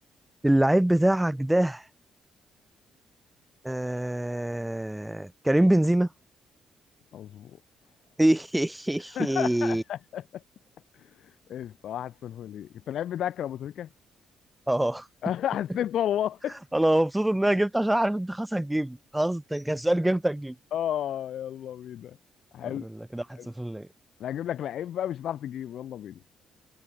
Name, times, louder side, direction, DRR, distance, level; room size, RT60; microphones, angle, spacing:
voice 1, 0.4-1.8 3.6-6.1 8.2-9.8 14.7-15.1 16.7-20.6 23.1-23.9, right 1 dB, 5° right, 0.5 m, -24 dB
voice 2, 7.1-7.6 9.1-10.4 11.0-13.9 15.2-16.6 20.7-22.2 22.5-22.9 23.4-23.5 24.2-26.2, left 10 dB, 70° left, 0.4 m, -32 dB
cardioid pair, 90°, 0 cm